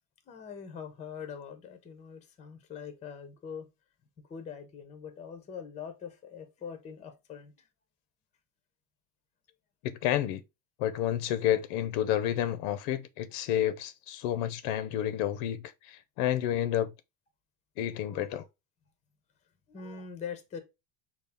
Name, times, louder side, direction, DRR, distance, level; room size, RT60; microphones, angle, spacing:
voice 1, 0.3-3.7 4.3-7.7 17.9-18.5 19.7-20.6, left 7 dB, 15° left, 0.5 m, -43 dB
voice 2, 9.8-10.4 10.8-16.9 17.8-18.4, left 11 dB, 75° left, 0.6 m, -30 dB
5.5 x 2.4 x 3.5 m
cardioid pair, 165°, 49 cm